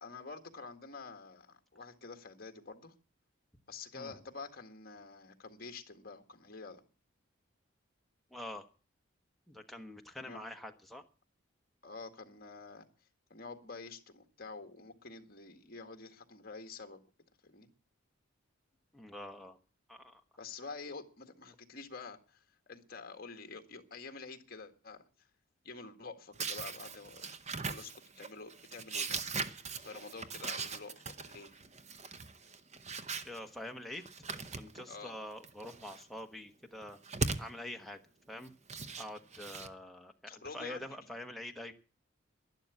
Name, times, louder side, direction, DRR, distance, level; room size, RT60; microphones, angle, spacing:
voice 1, 0.0-2.9 3.7-6.8 10.2-10.4 11.8-12.9 13.3-17.0 17.4-17.7 20.4-22.4 22.7-25.0 25.6-27.3 27.7-29.2 29.8-31.6 34.9-35.2 40.3-40.8, left 4 dB, 45° left, 6 dB, 1.8 m, -48 dB
voice 2, 8.3-8.7 9.5-11.0 18.9-19.6 19.9-20.2 33.2-37.0 37.4-38.0 38.3-38.5 39.0-41.7, left 1 dB, ahead, 2 dB, 1.2 m, -45 dB
sound 1, 26.3-33.4 33.9-34.9 35.3-36.0 36.8-37.5 38.5-39.7, right 4 dB, 35° right, 0.8 m, -40 dB
11.5 x 11.0 x 8.2 m, 0.38 s
head